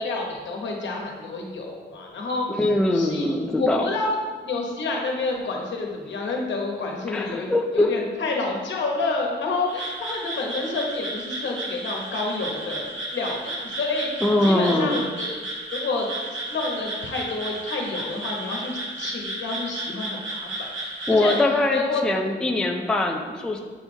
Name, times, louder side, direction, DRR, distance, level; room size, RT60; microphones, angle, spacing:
voice 1, 0.0-2.5 2.9-3.3 3.6-4.1 4.4-15.4 15.7-16.1 16.5-21.4 21.7-22.0 22.4-22.6, left 3 dB, 70° left, 0 dB, 1.2 m, -29 dB
voice 2, 2.6-3.9 7.1-7.9 14.2-15.0 21.1-23.6, left 2 dB, 5° left, 2 dB, 0.4 m, -22 dB
Frog, 9.7-21.4, right 1 dB, 85° right, 1.5 m, -33 dB
8.3 x 3.3 x 4.4 m, 1.5 s
wide cardioid pair, 165°, 19 cm